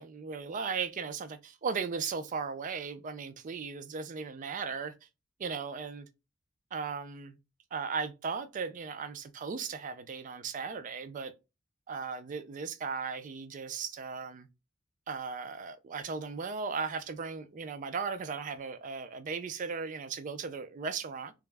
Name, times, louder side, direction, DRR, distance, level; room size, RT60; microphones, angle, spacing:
voice 1, 0.0-4.9 5.4-6.1 6.7-7.4 7.7-11.3 11.9-14.5 15.1-21.3, right 5 dB, 40° right, 0.3 m, -37 dB
2.3 x 2.0 x 3.2 m
head